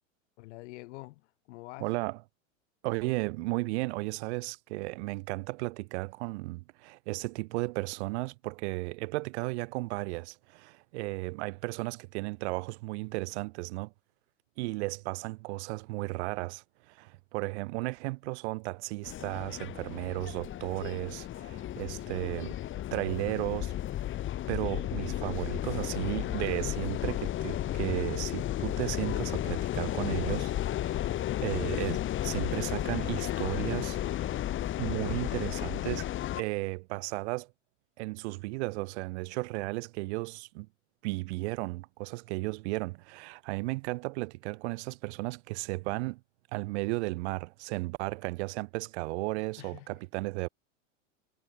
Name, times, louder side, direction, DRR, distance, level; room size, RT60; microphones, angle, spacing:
voice 1, 0.4-1.9 49.6-50.0, left 22 dB, 60° left, 4.5 m, -47 dB
voice 2, 1.8-2.2 2.8-13.9 14.6-22.6 22.9-23.7 24.5-31.1 31.4-34.4 34.8-36.1 36.4-37.5 38.0-40.7 41.0-46.2 46.5-50.5, right 24 dB, 60° right, 1.0 m, -34 dB
sound 1, 19.0-36.4, left 13 dB, 30° left, 1.6 m, -33 dB
hypercardioid pair, 115°, 39 cm